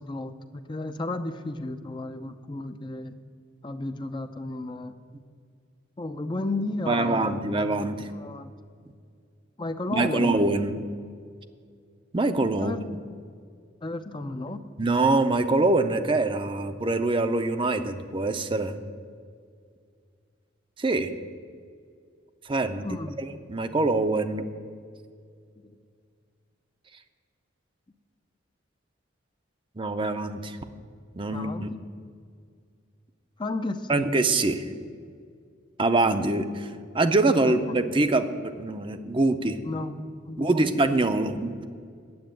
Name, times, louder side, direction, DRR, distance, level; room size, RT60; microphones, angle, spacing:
voice 1, 0.0-3.1 3.6-5.0 6.0-7.5 8.1-8.5 9.6-10.4 12.6-12.8 13.8-14.6 22.8-23.2 25.6-25.8 31.3-31.8 33.4-34.1 37.5-37.8 39.7-40.6, left 2 dB, 25° left, 8 dB, 0.5 m, -33 dB
voice 2, 6.9-8.1 9.9-10.7 12.1-12.7 14.8-18.8 20.8-21.1 22.5-22.9 23.2-24.4 29.8-30.6 31.2-31.7 33.9-34.6 35.8-36.7 36.9-39.6 40.4-41.7, right 2 dB, 25° right, 8 dB, 0.5 m, -24 dB
9.5 x 7.6 x 9.0 m, 2.2 s
head